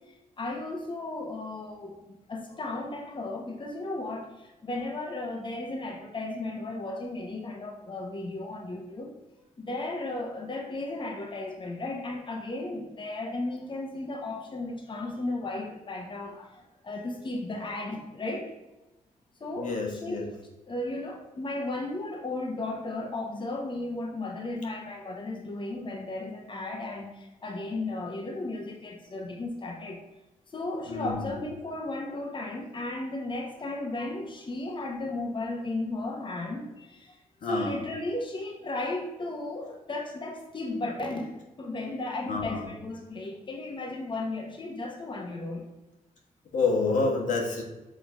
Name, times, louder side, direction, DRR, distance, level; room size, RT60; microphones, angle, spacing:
voice 1, 0.4-9.1 9.6-18.5 19.4-20.2 20.7-30.0 30.5-41.3 41.6-45.6, left 2 dB, 35° left, 1 dB, 1.0 m, -35 dB
voice 2, 19.6-20.3 30.9-31.2 37.4-37.8 42.3-42.6 46.5-47.6, left 3 dB, 75° left, -1 dB, 1.5 m, -28 dB
5.2 x 3.9 x 4.9 m, 1.0 s
cardioid pair, 80°, 14 cm